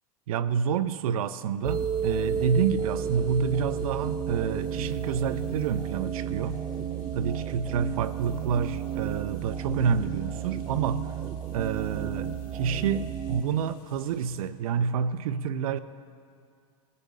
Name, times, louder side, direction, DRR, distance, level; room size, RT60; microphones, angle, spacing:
voice 1, 0.3-6.6 7.1-11.1 11.5-15.8, right 7 dB, 75° right, 14 dB, 0.6 m, -28 dB
sound 1, 1.6-13.4, right 8 dB, 20° right, 0.5 m, -32 dB
sound 2, 1.7-14.5, left 8 dB, 50° left, 1.4 m, -56 dB
19.5 x 6.9 x 4.9 m, 2.3 s
hypercardioid pair, 110°, 18 cm